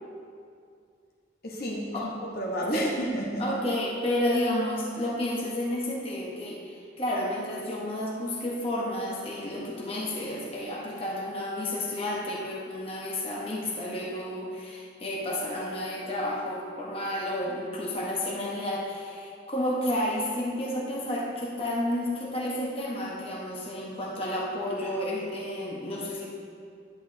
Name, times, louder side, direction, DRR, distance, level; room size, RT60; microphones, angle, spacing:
voice 1, 1.4-3.4, equal, 50° left, -3 dB, 1.0 m, -31 dB
voice 2, 3.4-26.3, left 1 dB, 30° left, -4 dB, 1.1 m, -31 dB
10.5 x 8.4 x 2.8 m, 2.3 s
head